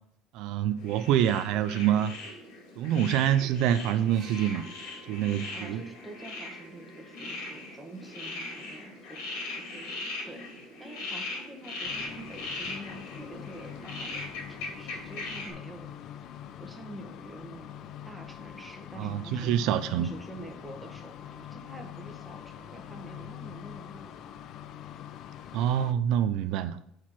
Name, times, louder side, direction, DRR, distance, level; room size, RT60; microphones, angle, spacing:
voice 1, 0.3-2.1 2.8-4.7 5.1-5.8 19.0-20.1 25.5-26.8, right 10 dB, 65° right, 0.4 m, -26 dB
sound 1, 0.8-15.5, left 2 dB, 85° left, 2.8 m, -40 dB
sound 2, 4.1-7.9 9.0-9.1, right 1 dB, 35° right, 1.4 m, -56 dB
voice 2, 5.5-9.2 9.5-16.1 16.6-19.5 20.0-24.4, right 1 dB, 5° right, 1.2 m, -47 dB
sound 3, 11.8-25.9, left 10 dB, 50° left, 0.4 m, -44 dB
6.4 x 4.5 x 5.8 m
cardioid pair, 145°, 0 cm